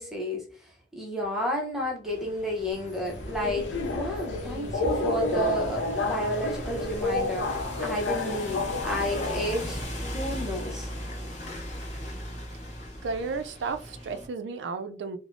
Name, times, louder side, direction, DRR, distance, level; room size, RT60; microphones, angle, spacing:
voice 1, 0.0-9.8 10.1-10.9, equal, ahead, 0.6 m, -31 dB
sound 1, 2.0-14.3, left 1 dB, 40° left, 0.8 m, -39 dB
sound 2, 2.7-10.7, right 1 dB, 70° left, 1.0 m, -45 dB
Subway metro underground, 3.0-9.8, left 2 dB, 85° left, 0.6 m, -30 dB
voice 2, 13.0-15.2, right 4 dB, 90° right, 0.4 m, -33 dB
3.2 x 2.0 x 2.5 m
head